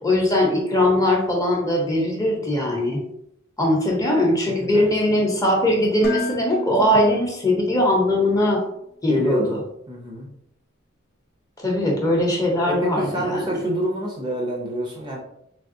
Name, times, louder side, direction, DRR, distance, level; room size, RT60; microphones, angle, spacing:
voice 1, 0.0-3.0 3.6-8.6 9.0-9.6 11.6-13.6, left 1 dB, 15° left, -1 dB, 0.7 m, -20 dB
voice 2, 4.4-4.9 9.1-9.6 9.9-10.3 12.7-15.2, equal, 20° right, -1 dB, 0.5 m, -27 dB
Dishes pots and pans, 6.0-8.1, left 2 dB, 50° left, 0.7 m, -32 dB
3.4 x 3.3 x 2.6 m, 0.75 s
head